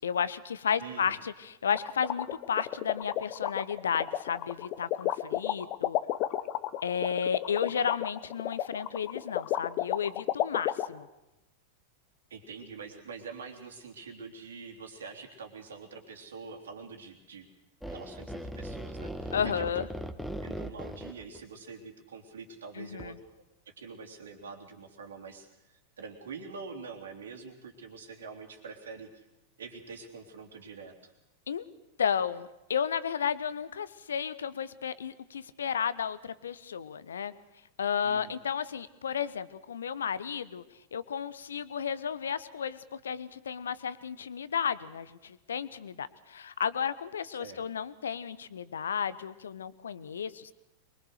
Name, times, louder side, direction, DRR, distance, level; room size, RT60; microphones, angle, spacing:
voice 1, 0.0-6.0 6.8-11.1 19.3-19.9 22.8-23.2 31.5-31.6 32.0-37.3 37.8-40.6 40.9-50.5, left 7 dB, 65° left, 17 dB, 0.9 m, -33 dB
voice 2, 0.8-1.2 12.3-17.5 17.9-19.7 20.4-23.1 23.6-29.2 29.6-31.1 38.0-38.3 47.4-47.6, right 5 dB, 65° right, 4 dB, 3.2 m, -45 dB
sound 1, 1.7-10.9, left 14 dB, 40° left, 1.0 m, -31 dB
sound 2, 17.8-21.4 23.0-23.1, equal, ahead, 1.4 m, -39 dB
23.5 x 23.0 x 6.6 m, 0.93 s
figure-of-eight pair, 90°, 0 cm